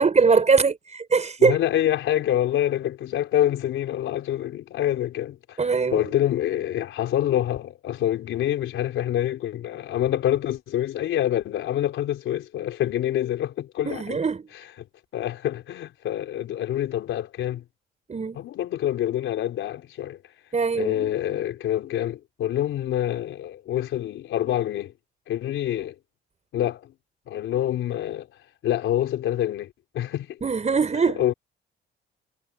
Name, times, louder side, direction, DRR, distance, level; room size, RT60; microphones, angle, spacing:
voice 1, 0.0-1.6 5.6-6.0 13.8-14.4 18.1-18.4 20.5-21.1 30.4-31.2, right 5 dB, 35° right, 6.5 m, -21 dB
voice 2, 1.4-5.6 5.9-14.2 14.8-14.9 15.1-17.6 18.3-20.2 20.7-24.9 25.3-25.9 26.5-26.9 27.3-28.3 28.6-30.4 31.2-31.3, left 12 dB, 80° left, 3.9 m, -26 dB
cardioid pair, 90°, 20 cm